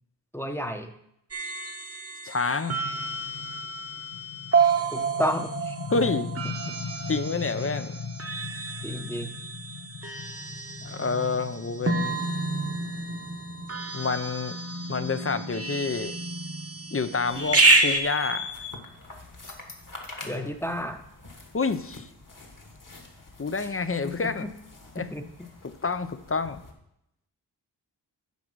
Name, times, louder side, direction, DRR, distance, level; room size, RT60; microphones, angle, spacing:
voice 1, 0.3-0.9 4.9-5.8 6.7-6.8 8.8-9.3 20.3-21.0 23.6-23.7 24.2-24.5 25.0-25.3, equal, 5° left, 6 dB, 0.8 m, -31 dB
sound 1, 1.3-18.0, right 3 dB, 35° right, 1.0 m, -29 dB
voice 2, 2.2-2.8 5.9-6.3 7.1-7.9 10.8-12.2 13.9-14.6 14.9-16.2 16.9-18.5 20.2-20.5 21.5-22.1 23.4-24.5 25.0-25.1 25.8-26.6, left 4 dB, 30° left, 12 dB, 0.5 m, -28 dB
sound 2, 4.1-15.6, left 6 dB, 70° left, 0.7 m, -39 dB
sound 3, 17.2-26.7, left 5 dB, 45° left, 1.5 m, -39 dB
9.4 x 4.9 x 6.2 m, 0.76 s
wide cardioid pair, 75°, 43 cm